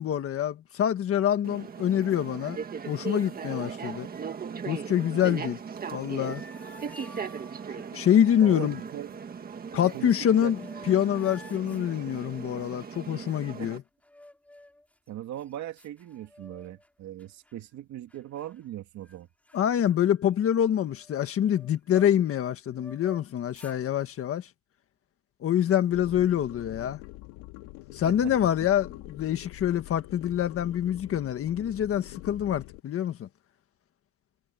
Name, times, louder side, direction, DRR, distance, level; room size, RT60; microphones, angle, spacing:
voice 1, 0.0-2.6 2.9-4.1 4.7-5.6 5.9-6.4 7.9-8.8 9.7-10.6 10.9-13.8 19.5-24.5 25.4-27.0 27.9-33.3, left 10 dB, 35° left, 1.6 m, -26 dB
sound 1, 1.4-13.8, right 6 dB, 25° right, 1.6 m, -38 dB
sound 2, 6.0-7.9 10.1-10.2 10.5-12.7 14.0-14.9 15.4-15.5 15.8-16.9 17.2-17.5 18.1-18.7 19.0-19.2 19.5-22.4 22.8-23.8, left 1 dB, 5° left, 5.3 m, -51 dB
voice 2, 8.4-9.1 9.9-10.5 13.6-13.7 15.1-19.3 28.0-28.5, right 12 dB, 45° right, 2.6 m, -39 dB
sound 3, 25.9-32.8, left 19 dB, 80° left, 2.1 m, -45 dB
cardioid pair, 155°, 38 cm